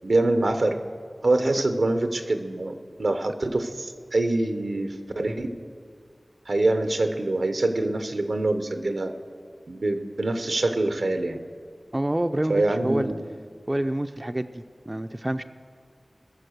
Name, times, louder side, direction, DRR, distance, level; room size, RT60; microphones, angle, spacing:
voice 1, 0.0-0.8 1.2-5.6 6.5-9.1 9.7-11.4 12.5-13.2, right 2 dB, 80° right, 8 dB, 0.9 m, -25 dB
voice 2, 11.9-13.1 13.7-15.4, right 1 dB, 25° right, 9 dB, 0.4 m, -27 dB
21.0 x 7.0 x 6.6 m, 2.1 s
wide cardioid pair, 55°, 0 cm